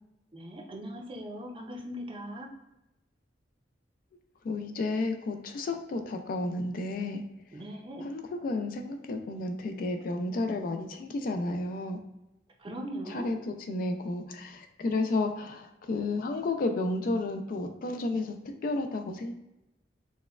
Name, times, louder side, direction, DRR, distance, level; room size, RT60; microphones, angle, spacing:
voice 1, 0.3-2.5 7.5-8.0 12.6-13.3, equal, 30° right, 1 dB, 0.5 m, -39 dB
voice 2, 4.4-7.2 8.0-12.0 13.1-19.3, left 2 dB, 50° left, 5 dB, 0.3 m, -32 dB
4.1 x 2.2 x 2.3 m, 0.92 s
head